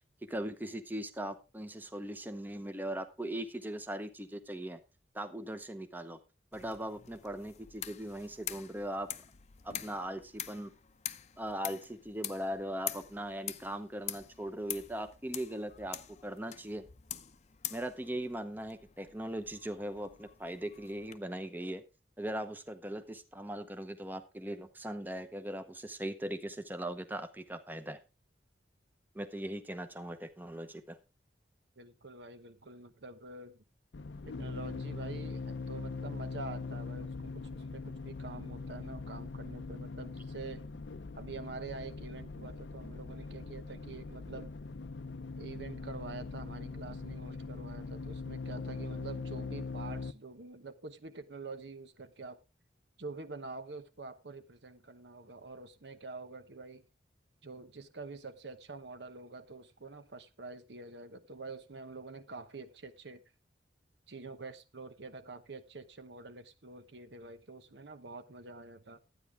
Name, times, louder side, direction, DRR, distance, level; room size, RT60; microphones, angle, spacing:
voice 1, 0.3-4.8 5.1-6.2 6.5-9.1 9.6-10.7 11.4-16.0 16.2-16.8 17.7-21.8 22.2-28.0 29.1-31.0, right 1 dB, 10° right, 0.8 m, -39 dB
sound 1, 6.5-21.2, left 11 dB, 40° left, 0.7 m, -45 dB
voice 2, 31.8-33.6 34.2-40.6 41.2-44.5 45.4-52.4 53.0-56.8 57.4-63.2 64.1-69.0, right 3 dB, 70° right, 1.0 m, -46 dB
sound 2, 33.9-50.1, left 4 dB, 80° left, 0.6 m, -41 dB
12.5 x 9.5 x 3.5 m
head